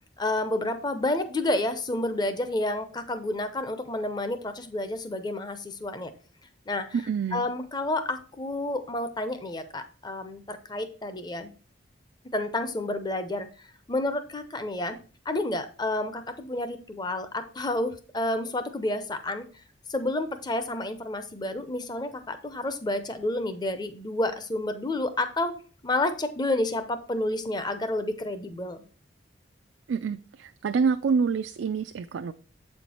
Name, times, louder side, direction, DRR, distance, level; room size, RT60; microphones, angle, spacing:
voice 1, 0.2-6.1 6.7-7.0 7.3-11.5 12.3-13.5 13.9-15.0 15.3-19.5 19.9-25.5 25.8-28.8, left 2 dB, 20° left, 0.6 m, -30 dB
voice 2, 6.9-7.4 29.9-32.3, right 5 dB, 75° right, 0.4 m, -27 dB
7.9 x 4.5 x 4.2 m
head